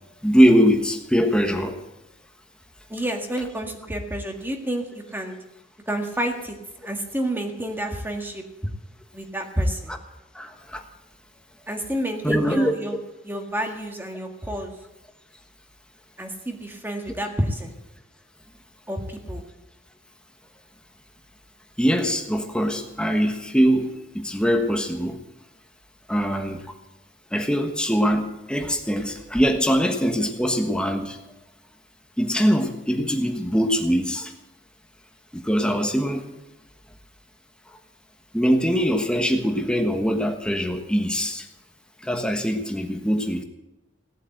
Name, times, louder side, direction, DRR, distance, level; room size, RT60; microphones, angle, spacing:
voice 1, 0.2-1.8 9.9-10.0 10.3-10.8 12.2-12.7 21.8-25.2 26.1-26.7 27.3-31.2 32.2-34.3 35.3-36.2 37.7-37.8 38.3-41.5 42.0-43.4, equal, 5° left, 5 dB, 1.3 m, -22 dB
voice 2, 2.9-5.4 5.9-6.6 6.8-8.7 9.1-9.9 11.7-13.0 13.2-14.7 16.2-17.7 18.9-19.4, right 1 dB, 10° right, 3 dB, 1.7 m, -29 dB
17.5 x 8.3 x 7.9 m, 0.96 s
head